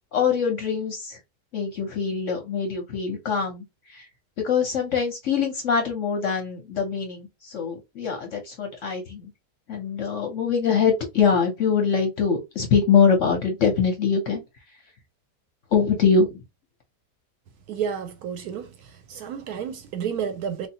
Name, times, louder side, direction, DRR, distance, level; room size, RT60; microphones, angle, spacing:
voice 1, 0.1-1.2 1.5-4.1 4.4-9.3 9.7-14.4 15.7-16.4, left 6 dB, 60° left, 0.8 m, -23 dB
voice 2, 17.7-18.7 19.1-20.7, right 7 dB, 75° right, 1.0 m, -30 dB
3.2 x 2.6 x 2.8 m
omnidirectional pair, 1.8 m